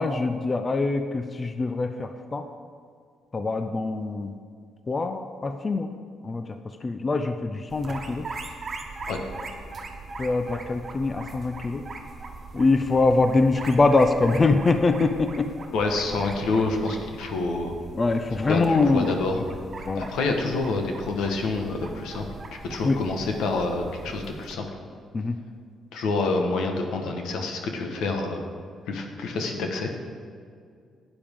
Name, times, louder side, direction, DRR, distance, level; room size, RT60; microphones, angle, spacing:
voice 1, 0.0-2.5 3.3-4.3 4.9-5.9 6.2-6.5 6.8-8.3 10.2-11.8 12.5-15.5 18.0-19.1 19.9-20.1 22.8-23.0 25.1-25.4, left 3 dB, 30° left, 8 dB, 0.5 m, -23 dB
sound 1, 7.7-24.5, right 3 dB, 45° right, 1.3 m, -40 dB
voice 2, 15.7-17.7 18.5-19.4 20.0-22.2 22.7-24.6 25.9-28.4 28.9-29.9, left 3 dB, 85° left, 3 dB, 1.3 m, -27 dB
12.0 x 8.9 x 3.6 m, 2.2 s
cardioid pair, 90°, 0 cm